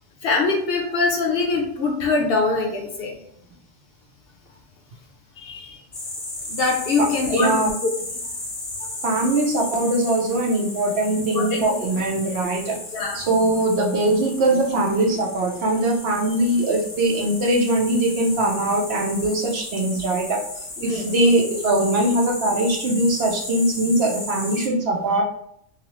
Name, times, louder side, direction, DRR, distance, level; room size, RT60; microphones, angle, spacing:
voice 1, 0.2-3.1 5.4-5.8 6.5-7.6 8.8-8.9 11.3-11.7 12.9-13.2 20.8-21.0, left 3 dB, 60° left, 0 dB, 0.8 m, -23 dB
sound 1, 5.9-24.7, left 2 dB, 35° left, 0.4 m, -35 dB
voice 2, 7.3-7.7 9.0-12.8 13.1-25.2, right 1 dB, 65° right, 0 dB, 0.8 m, -21 dB
2.6 x 2.4 x 2.9 m, 0.70 s
omnidirectional pair, 1.3 m